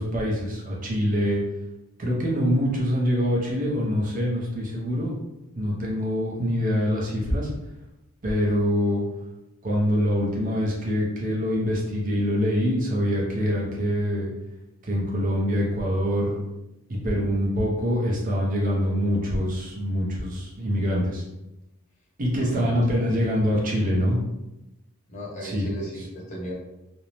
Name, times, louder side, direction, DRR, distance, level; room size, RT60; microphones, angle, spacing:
voice 1, 0.0-1.4 2.0-5.1 5.5-7.5 8.2-9.0 9.6-14.3 14.8-16.4 16.9-21.2 22.2-24.2 25.4-25.7 26.0-26.1, equal, 35° right, -3 dB, 0.5 m, -24 dB
voice 2, 22.4-23.6 25.1-26.5, right 1 dB, 35° left, -4 dB, 0.6 m, -37 dB
2.5 x 2.0 x 3.0 m, 0.93 s
head